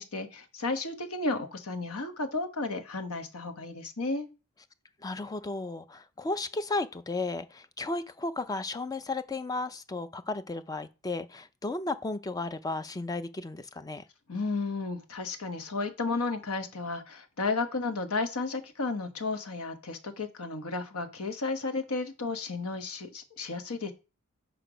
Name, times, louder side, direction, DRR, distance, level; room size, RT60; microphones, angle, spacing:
voice 1, 0.0-4.3 14.3-23.9, left 3 dB, 75° left, 1.1 m, -33 dB
voice 2, 5.0-14.0, left 2 dB, 15° left, 0.4 m, -34 dB
6.5 x 5.0 x 5.0 m
head